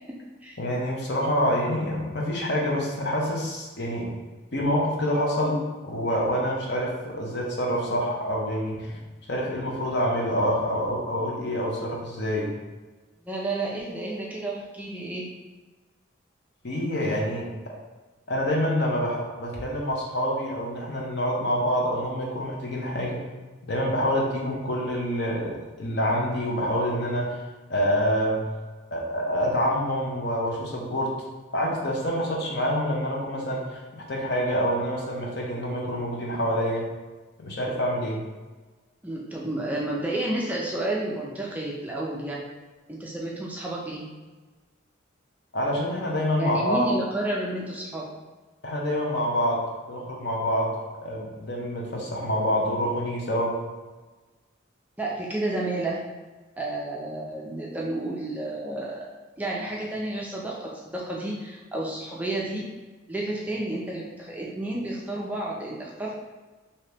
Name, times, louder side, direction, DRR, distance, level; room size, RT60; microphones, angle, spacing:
voice 1, 0.6-4.1 4.5-9.0 9.3-12.5 16.6-17.4 18.3-23.2 23.7-27.4 27.7-28.4 28.9-31.1 31.5-36.8 37.4-38.2 45.5-46.9 48.6-49.6 49.9-50.7 51.0-53.5, equal, 55° left, -2 dB, 0.7 m, -26 dB
voice 2, 13.2-15.3 39.0-42.4 42.9-44.1 46.4-48.1 55.0-56.0 56.6-59.0 59.4-62.6 63.1-66.1, right 2 dB, 10° right, -4 dB, 0.3 m, -31 dB
2.8 x 2.8 x 3.3 m, 1.2 s
head